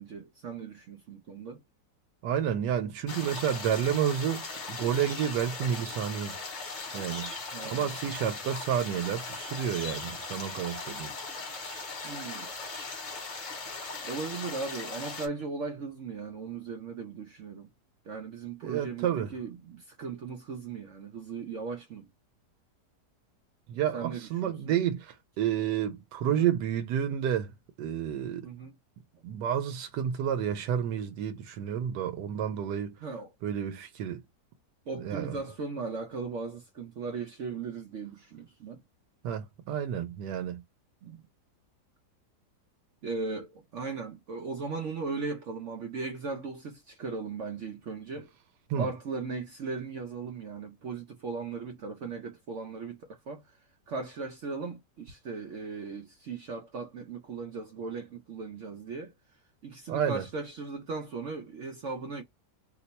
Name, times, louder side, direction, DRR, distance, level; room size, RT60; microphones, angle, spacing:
voice 1, 0.0-1.6 7.5-7.9 12.0-12.5 14.0-17.7 18.1-22.1 23.9-24.7 26.2-26.5 28.4-28.7 33.0-33.3 34.9-38.8 41.0-41.2 43.0-48.3 48.8-53.4 53.9-59.1 59.6-62.2, right 4 dB, 60° right, 0.8 m, -38 dB
voice 2, 2.2-6.4 6.9-7.3 7.6-11.1 18.6-19.3 23.7-27.5 27.8-28.5 29.2-32.9 33.4-34.2 35.0-35.4 39.2-40.6 48.7-48.9 59.9-60.2, right 9 dB, 85° right, 1.2 m, -30 dB
sound 1, 3.1-15.3, left 3 dB, 45° left, 1.3 m, -39 dB
3.0 x 2.1 x 3.9 m
omnidirectional pair, 1.8 m